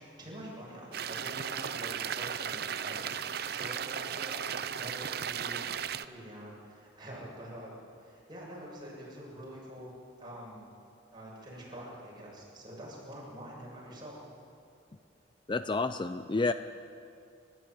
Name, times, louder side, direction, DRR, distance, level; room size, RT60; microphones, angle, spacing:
voice 1, 0.0-3.1 3.4-4.4 4.7-9.9 10.2-10.6 11.1-14.2, right 1 dB, 25° right, -4 dB, 7.4 m, -46 dB
sound 1, 0.9-6.0, right 8 dB, 55° right, 0.7 m, -36 dB
voice 2, 15.5-16.5, left 3 dB, 25° left, 10 dB, 0.5 m, -29 dB
29.5 x 13.5 x 9.4 m, 2.5 s
head